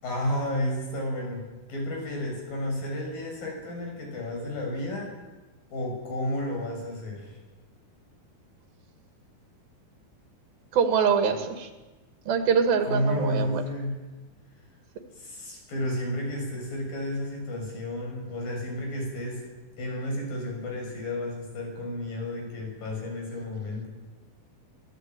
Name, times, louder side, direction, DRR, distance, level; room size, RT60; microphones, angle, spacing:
voice 1, 0.0-5.1 5.7-7.4 12.8-14.1 15.2-19.4 19.8-23.9, left 1 dB, 65° left, 1 dB, 8.0 m, -32 dB
voice 2, 10.7-11.7 12.3-13.6, right 6 dB, 75° right, 7 dB, 3.9 m, -24 dB
24.5 x 16.5 x 9.2 m, 1.2 s
omnidirectional pair, 4.3 m